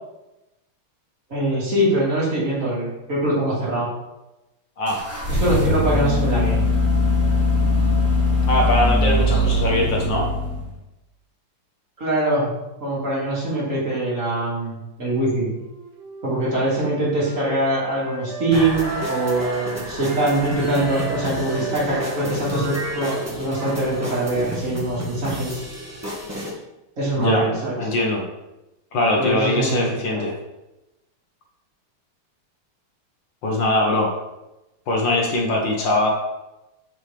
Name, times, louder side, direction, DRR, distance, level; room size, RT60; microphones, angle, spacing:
voice 1, 1.3-3.9 5.3-6.6 12.0-12.5 12.8-15.5 16.2-25.6 27.0-27.8 29.2-29.8 30.1-30.2, right 1 dB, 35° right, -7 dB, 2.6 m, -23 dB
sound 1, 4.9-10.8, left 2 dB, 10° left, 1.2 m, -20 dB
voice 2, 8.5-10.3 27.2-27.5 27.8-28.2 28.9-30.3 33.4-34.1 34.9-36.1, left 1 dB, 65° left, 0 dB, 1.8 m, -21 dB
Wind instrument woodwind instrument, 15.3-19.7 20.0-24.6, right 4 dB, 80° right, 2.1 m, -35 dB
sound 2, 18.5-26.5, equal, 10° right, 0.9 m, -31 dB
7.2 x 6.2 x 3.3 m, 0.97 s
omnidirectional pair, 2.3 m